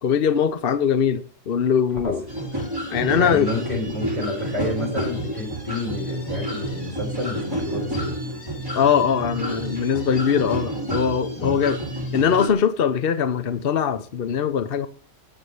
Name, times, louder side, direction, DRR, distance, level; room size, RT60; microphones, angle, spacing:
voice 1, 0.0-2.2 2.9-3.5 8.7-11.8 12.1-14.9, left 7 dB, 55° left, 0.9 m, -21 dB
sound 1, 2.3-12.5, right 1 dB, 15° right, 3.4 m, -29 dB
voice 2, 3.1-8.1 11.3-11.6, left 2 dB, 15° left, 5.9 m, -29 dB
9.8 x 7.9 x 6.8 m
omnidirectional pair, 1.3 m